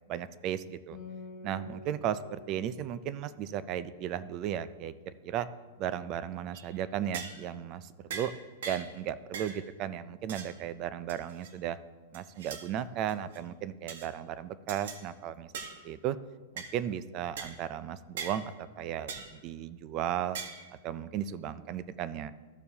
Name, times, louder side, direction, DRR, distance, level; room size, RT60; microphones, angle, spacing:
voice 1, 0.1-1.0 1.4-5.5 5.8-8.3 8.6-11.8 12.1-15.5 15.8-16.2 16.5-20.4 20.8-22.3, right 10 dB, 25° right, 15 dB, 0.3 m, -35 dB
Acoustic guitar, 0.9-4.6, left 2 dB, 20° left, 2.3 m, -49 dB
sound 1, 6.5-6.7 7.1-7.5 8.1-8.3 8.6-8.9 9.3-9.6 10.3-10.5 11.1-11.5 12.1-12.6 13.1-13.4 13.9-14.1 14.7-15.0 15.5-15.8 16.6-16.7 17.4-17.5 18.2-18.4 19.1-19.3 20.3-20.7, right 5 dB, 60° right, 1.2 m, -40 dB
14.0 x 6.8 x 2.8 m, 1.3 s
supercardioid pair, 170°, 0 cm